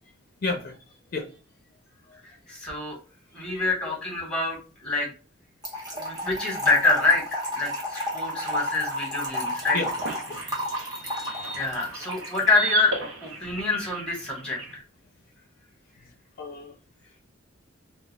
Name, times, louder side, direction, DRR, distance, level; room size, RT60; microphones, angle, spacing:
voice 1, 0.4-0.8 1.1-1.3 2.1-2.2 9.7-9.9 10.3-10.4 16.4-16.7, left 3 dB, 50° left, 4 dB, 0.4 m, -31 dB
voice 2, 2.2-3.0 3.3-5.1 5.9-9.8 11.5-14.8, left 3 dB, 5° left, -2 dB, 1.0 m, -26 dB
Trickle dribble / Fill (with liquid), 5.6-12.7, equal, 20° right, 0.8 m, -32 dB
sound 1, 9.3-14.8, right 4 dB, 90° right, 0.6 m, -36 dB
2.3 x 2.2 x 3.1 m, 0.34 s
head